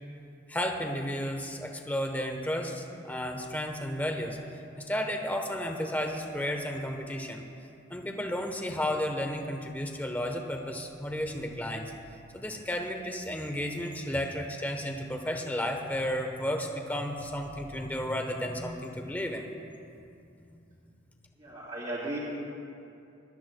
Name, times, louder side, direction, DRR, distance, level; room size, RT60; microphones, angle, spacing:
voice 1, 0.5-4.4 4.8-7.4 7.9-11.9 12.3-19.5 20.4-20.5, equal, 10° left, 3 dB, 1.0 m, -33 dB
voice 2, 21.4-22.2, right 2 dB, 40° right, -8 dB, 2.7 m, -35 dB
24.0 x 12.5 x 2.3 m, 2.6 s
head